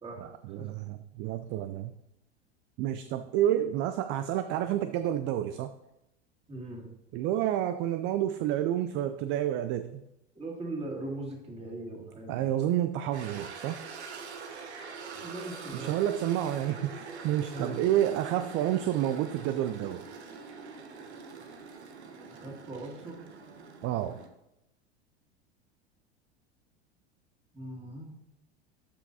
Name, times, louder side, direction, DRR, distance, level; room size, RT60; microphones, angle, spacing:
voice 1, 0.2-1.9 2.8-5.7 7.1-10.0 12.3-13.8 15.7-20.0 23.8-24.2, right 12 dB, 35° right, 11 dB, 0.4 m, -29 dB
voice 2, 6.5-6.9 10.3-12.4 15.1-15.9 17.5-17.8 19.8-19.9 22.3-23.2 27.5-28.2, right 2 dB, 20° right, -1 dB, 2.4 m, -40 dB
sound 1, 13.1-24.3, right 5 dB, 75° right, 1.1 m, -44 dB
12.5 x 6.0 x 2.8 m, 0.89 s
figure-of-eight pair, 85°, 33 cm